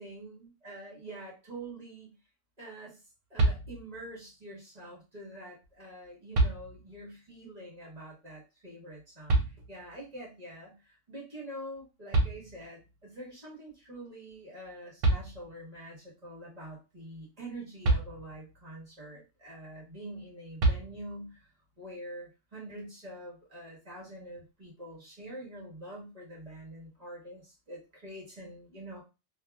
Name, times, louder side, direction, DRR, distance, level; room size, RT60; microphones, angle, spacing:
voice 1, 0.0-2.1 2.6-3.0 3.3-21.5 21.8-29.0, right 1 dB, 30° right, -5 dB, 1.4 m, -45 dB
sound 1, 3.4-4.1 5.6-5.7 6.3-7.1 9.3-10.0 11.8-11.9 12.1-13.0 14.7-14.8 15.0-15.8 17.8-18.6 20.6-21.4, right 2 dB, 75° right, 1.1 m, -29 dB
2.9 x 2.6 x 2.2 m, 0.28 s
omnidirectional pair, 1.3 m